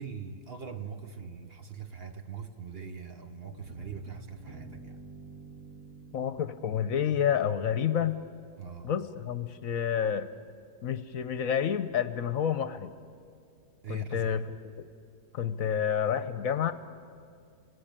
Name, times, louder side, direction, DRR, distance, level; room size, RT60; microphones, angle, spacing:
voice 1, 0.0-5.0 8.6-8.9 13.8-14.3, right 6 dB, 45° right, 7 dB, 1.2 m, -42 dB
sound 1, 3.5-8.3, right 4 dB, 85° right, 2.4 m, -49 dB
voice 2, 6.1-8.2 8.8-10.3 10.8-12.9 13.9-14.9 15.3-16.7, left 8 dB, 65° left, 13 dB, 1.1 m, -29 dB
27.5 x 18.5 x 8.9 m, 2.3 s
omnidirectional pair, 1.6 m